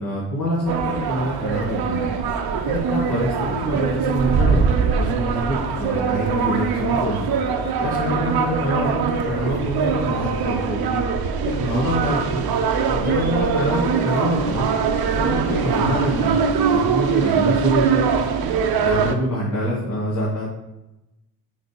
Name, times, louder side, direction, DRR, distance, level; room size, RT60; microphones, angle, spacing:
voice 1, 0.0-2.1 2.6-7.3 7.8-11.0 11.4-12.5 12.9-14.7 15.1-16.4 16.7-18.1 18.8-20.5, equal, 40° left, -6 dB, 2.4 m, -25 dB
sound 1, 0.7-19.2, right 6 dB, 50° right, 0.9 m, -22 dB
6.5 x 5.5 x 4.8 m, 0.96 s
figure-of-eight pair, 40°, 46 cm